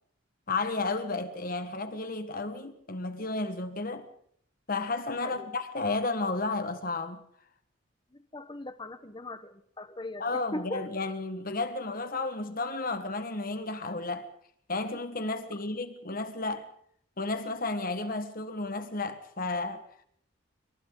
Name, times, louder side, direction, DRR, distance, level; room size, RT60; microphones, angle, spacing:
voice 1, 0.5-4.1 4.7-7.3 10.2-14.3 14.7-16.7 17.2-20.0, left 3 dB, 45° left, 1.6 m, -32 dB
voice 2, 8.1-10.8, left 1 dB, 25° left, 1.3 m, -39 dB
27.5 x 25.0 x 4.0 m
head